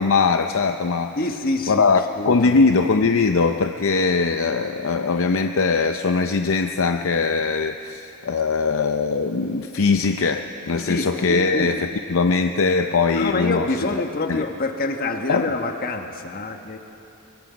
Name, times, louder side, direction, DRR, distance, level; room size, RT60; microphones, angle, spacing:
voice 1, 0.0-1.1 1.7-13.7 14.3-14.4 15.3-15.5, left 4 dB, 60° left, 7 dB, 0.6 m, -21 dB
voice 2, 1.1-2.7 10.9-11.7 13.1-16.8, left 2 dB, 40° left, 5 dB, 1.3 m, -26 dB
23.5 x 22.5 x 5.1 m, 2.8 s
head